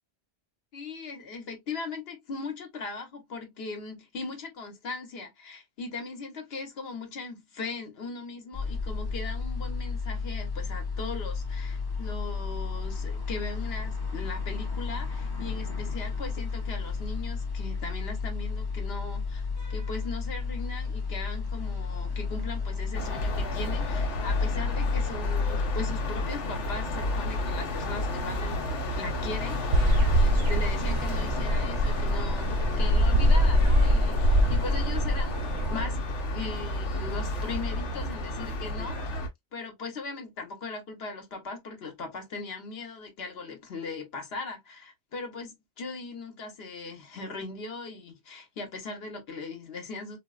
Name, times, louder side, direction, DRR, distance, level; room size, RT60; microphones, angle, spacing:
voice 1, 0.7-36.0 36.2-39.2 39.5-50.2, left 3 dB, 60° left, 1.1 m, -39 dB
sound 1, 8.5-25.7, left 4 dB, 30° left, 0.5 m, -33 dB
sound 2, 22.9-39.3, left 2 dB, 90° left, 1.2 m, -31 dB
sound 3, 29.7-35.8, equal, 75° right, 0.8 m, -24 dB
3.8 x 2.0 x 2.3 m
omnidirectional pair, 1.2 m